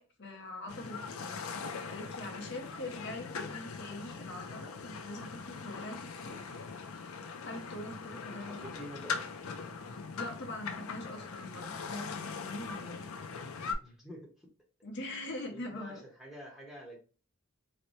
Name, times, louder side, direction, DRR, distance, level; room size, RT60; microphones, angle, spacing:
voice 1, 0.0-1.4 1.8-6.4 7.5-8.7 10.1-13.1 14.8-16.0, left 1 dB, 55° left, 0.9 m, -43 dB
sound 1, 0.7-13.7, left 5 dB, 75° left, 0.5 m, -41 dB
voice 2, 8.1-9.2 13.8-14.5 15.5-17.0, equal, ahead, 0.9 m, -48 dB
4.0 x 2.1 x 3.1 m
head